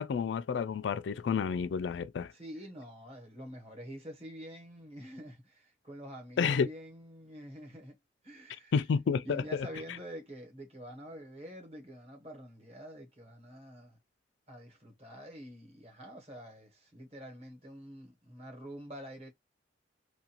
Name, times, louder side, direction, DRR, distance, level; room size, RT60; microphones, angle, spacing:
voice 1, 0.0-2.3 6.4-6.7 8.7-9.7, left 6 dB, 75° left, 0.3 m, -30 dB
voice 2, 2.3-8.0 8.2-8.7 9.2-14.0 14.5-19.3, equal, 35° right, 1.1 m, -47 dB
2.5 x 2.3 x 2.8 m
head